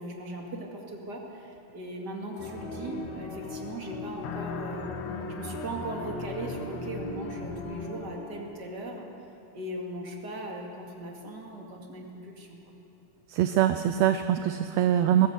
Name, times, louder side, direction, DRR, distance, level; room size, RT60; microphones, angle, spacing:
voice 1, 0.0-5.0 5.3-9.1 9.5-12.6, right 2 dB, 35° right, 0 dB, 2.7 m, -39 dB
sound 1, 2.3-8.4, left 2 dB, 40° left, 2.5 m, -41 dB
sound 2, 2.4-7.9, left 5 dB, 70° left, 2.6 m, -39 dB
voice 2, 13.3-15.3, right 11 dB, 75° right, 9 dB, 1.6 m, -23 dB
20.5 x 16.0 x 8.2 m, 2.9 s
omnidirectional pair, 3.5 m